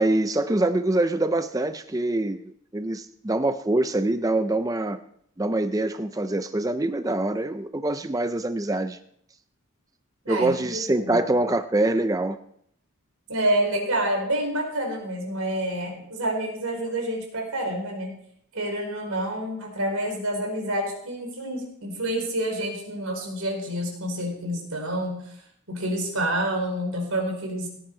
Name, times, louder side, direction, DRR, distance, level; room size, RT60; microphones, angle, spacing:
voice 1, 0.0-5.0 5.4-9.0 10.3-12.4, right 2 dB, 15° right, 9 dB, 0.5 m, -24 dB
voice 2, 10.2-11.2 13.3-18.1 18.5-25.2 25.7-27.7, right 1 dB, 90° right, 1 dB, 5.0 m, -28 dB
17.5 x 10.5 x 4.8 m, 0.69 s
head